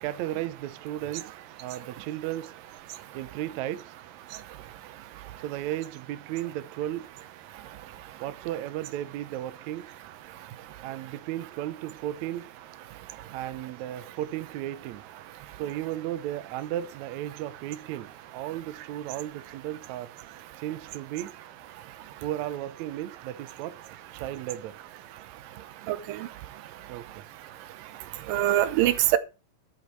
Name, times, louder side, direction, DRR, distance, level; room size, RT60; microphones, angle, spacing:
voice 1, 0.0-1.3 1.6-2.5 3.1-3.9 5.4-7.1 8.2-9.9 10.8-12.5 13.3-15.0 15.6-20.1 20.6-21.3 22.2-23.8 24.1-24.8 26.9-27.1, right 13 dB, 70° right, 1.9 m, -34 dB
voice 2, 25.9-26.3 28.3-29.2, right 13 dB, 90° right, 2.5 m, -23 dB
10.5 x 8.2 x 4.7 m
omnidirectional pair, 3.9 m